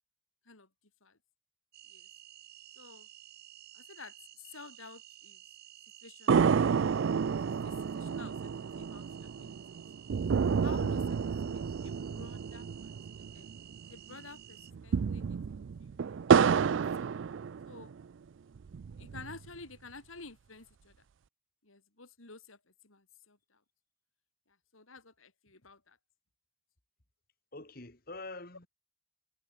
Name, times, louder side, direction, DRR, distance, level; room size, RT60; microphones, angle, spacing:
sound 1, 1.7-14.7, right 12 dB, 50° right, 3.9 m, -54 dB
voice 1, 2.7-3.1 3.7-5.4 6.0-6.5 7.4-9.8 10.6-13.5 13.8-16.0 16.4-17.1 17.6-17.9 19.0-21.0 21.6-23.6 24.5-26.0, left 3 dB, 80° left, 3.3 m, -52 dB
sound 2, 6.3-13.9 14.1-14.2 14.7-18.0 18.6-19.5, right 6 dB, 65° right, 0.4 m, -30 dB
voice 2, 27.5-28.7, left 2 dB, 45° left, 2.3 m, -45 dB
head